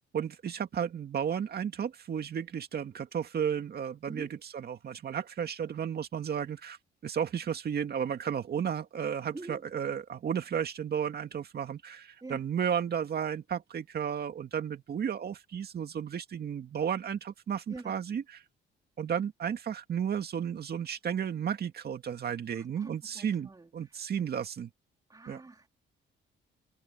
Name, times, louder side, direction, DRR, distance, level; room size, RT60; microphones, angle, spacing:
voice 1, 0.1-6.8 7.0-18.2 19.0-24.7 25.3-25.4, right 8 dB, 55° right, 2.2 m, -33 dB
voice 2, 17.7-18.0 22.5-24.0 25.1-25.7, right 3 dB, 20° right, 3.2 m, -46 dB
cardioid pair, 90°, 20 cm